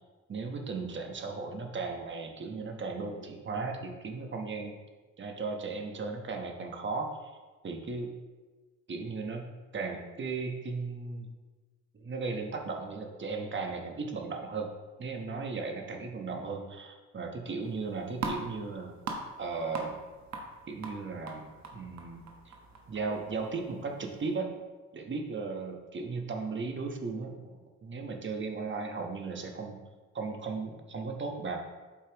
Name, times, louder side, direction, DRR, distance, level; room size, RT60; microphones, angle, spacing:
voice 1, 0.3-4.8 5.2-7.3 7.6-8.1 8.9-11.3 11.9-14.7 15.0-18.9 19.4-20.0 20.7-22.5 22.9-24.5 24.9-27.5 27.8-29.8 30.1-31.6, right 4 dB, 40° right, 3 dB, 1.1 m, -36 dB
sound 1, 17.6-24.4, right 3 dB, 65° right, 1.2 m, -42 dB
8.4 x 5.5 x 3.0 m, 1.3 s
cardioid pair, 90°, 30 cm